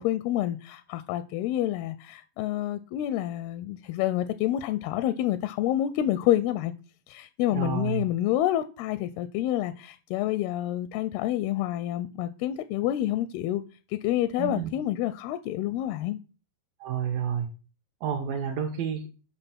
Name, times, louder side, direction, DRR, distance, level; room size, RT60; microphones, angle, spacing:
voice 1, 0.0-6.7 7.1-13.6 13.9-16.2, left 13 dB, 80° left, 2.3 m, -28 dB
voice 2, 7.5-8.0 14.4-14.7 16.8-17.5 18.0-19.0, right 8 dB, 70° right, 2.4 m, -30 dB
9.0 x 5.8 x 6.0 m
omnidirectional pair, 4.9 m